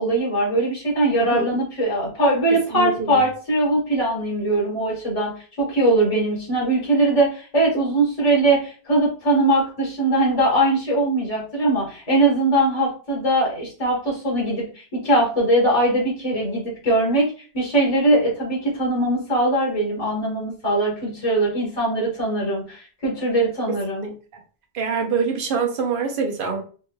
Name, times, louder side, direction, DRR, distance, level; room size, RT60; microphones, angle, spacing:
voice 1, 0.0-5.3 5.6-17.3 17.5-24.1, right 1 dB, 35° left, -4 dB, 1.5 m, -21 dB
voice 2, 1.2-1.5 2.7-3.2 24.0-24.1 24.7-26.6, right 5 dB, 60° right, 3 dB, 0.9 m, -24 dB
3.6 x 2.9 x 2.3 m, 0.38 s
omnidirectional pair, 1.1 m